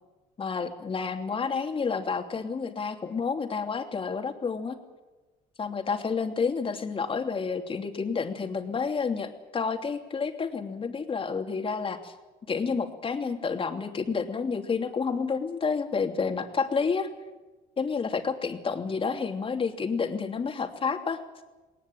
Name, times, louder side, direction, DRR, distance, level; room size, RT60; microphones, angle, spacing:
voice 1, 0.4-4.8 5.6-12.1 12.5-17.1 17.8-21.2, left 5 dB, 30° left, 5 dB, 3.0 m, -30 dB
20.0 x 19.5 x 9.2 m, 1.2 s
cardioid pair, 110°, 17 cm